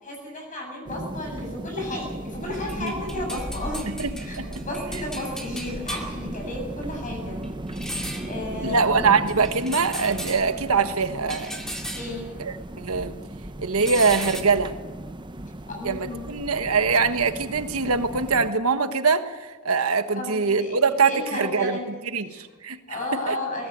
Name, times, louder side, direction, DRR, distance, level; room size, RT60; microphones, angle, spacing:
voice 1, 0.0-3.8 4.2-7.4 8.2-9.0 11.9-12.3 15.7-16.3 20.2-21.9 22.3-22.4 22.9-23.7, left 1 dB, 40° left, 1 dB, 7.8 m, -33 dB
sound 1, 0.9-18.5, right 1 dB, 20° right, 0.8 m, -37 dB
sound 2, 2.3-13.2 13.4-14.4, equal, 5° left, 2.4 m, -37 dB
voice 2, 3.9-4.5 8.6-11.5 12.4-13.1 13.6-14.7 15.8-23.4, right 5 dB, 85° right, 9 dB, 1.5 m, -23 dB
22.0 x 18.5 x 7.5 m, 1.3 s
head